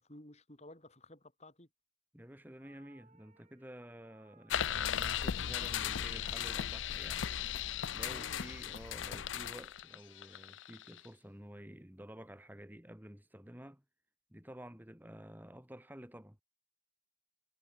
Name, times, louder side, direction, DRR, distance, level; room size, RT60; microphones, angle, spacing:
voice 1, 0.0-1.7 8.0-8.4, left 1 dB, 35° left, 6.1 m, -54 dB
voice 2, 2.1-7.3 7.9-13.8 14.3-16.4, equal, 10° right, 2.2 m, -51 dB
sound 1, 2.6-11.2, right 3 dB, 35° right, 6.2 m, -69 dB
sound 2, 4.5-11.1, left 9 dB, 80° left, 0.6 m, -37 dB
head